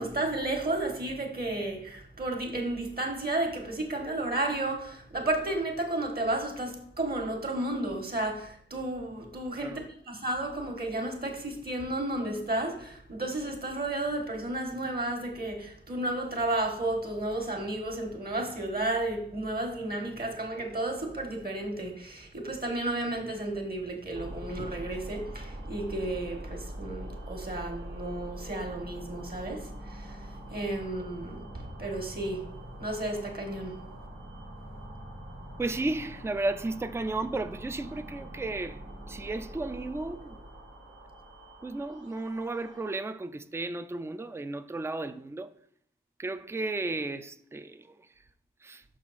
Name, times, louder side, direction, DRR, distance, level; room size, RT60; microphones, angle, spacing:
voice 1, 0.0-30.2 30.5-32.5 32.8-33.8, right 2 dB, 45° right, 1.4 m, -32 dB
sound 1, 24.1-43.0, right 1 dB, 65° right, 1.4 m, -44 dB
voice 2, 35.6-40.4 41.6-45.5 46.2-48.1 48.6-48.8, right 2 dB, 10° right, 0.4 m, -34 dB
6.2 x 5.3 x 4.1 m
wide cardioid pair, 60°, 21 cm